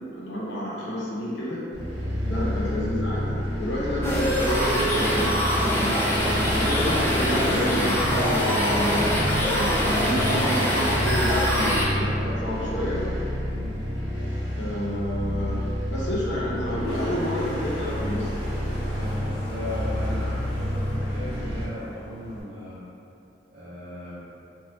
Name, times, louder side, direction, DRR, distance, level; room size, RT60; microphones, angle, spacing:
voice 1, 0.1-1.6 2.3-5.9 6.6-13.0 14.6-18.5, left 1 dB, 90° left, -7 dB, 0.8 m, -29 dB
sound 1, 1.7-21.6, left 1 dB, 80° right, 0.7 m, -29 dB
sound 2, 4.0-11.9, equal, 10° left, 0.4 m, -24 dB
voice 2, 8.8-9.2 12.2-12.5 13.5-13.8 18.9-22.8 23.5-24.1, equal, 50° right, -13 dB, 0.8 m, -37 dB
Toilet flush, 16.3-22.4, left 1 dB, 25° left, 0.9 m, -39 dB
2.9 x 2.3 x 3.1 m, 2.6 s
head